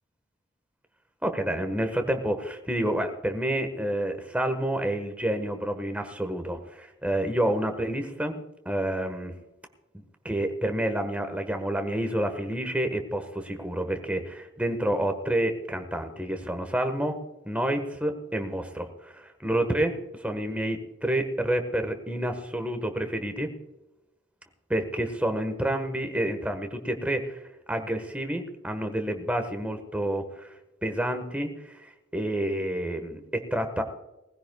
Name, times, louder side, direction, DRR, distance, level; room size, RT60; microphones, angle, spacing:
voice 1, 1.2-8.4 8.6-9.3 10.2-17.2 17.4-23.5 24.7-30.5 30.8-31.5 31.8-33.8, right 1 dB, 5° right, 6 dB, 1.3 m, -29 dB
20.0 x 15.5 x 2.3 m, 0.98 s
head